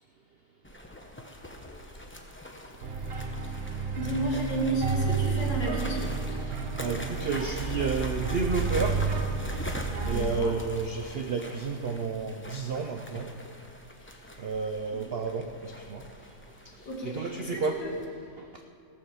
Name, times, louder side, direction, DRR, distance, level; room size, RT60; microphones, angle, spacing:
sound 1, 0.6-18.1, left 1 dB, 15° left, 0.5 m, -43 dB
sound 2, 2.8-10.2, right 4 dB, 40° right, 1.1 m, -31 dB
voice 1, 3.9-6.0 10.1-10.5 14.4-14.5 14.9-15.0 16.8-17.9, right 1 dB, 80° left, -3 dB, 2.9 m, -32 dB
voice 2, 6.4-9.0 10.0-13.3 14.4-16.0 17.0-17.8, right 4 dB, 75° right, 5 dB, 0.5 m, -31 dB
16.5 x 6.8 x 7.0 m, 2.5 s
omnidirectional pair, 1.9 m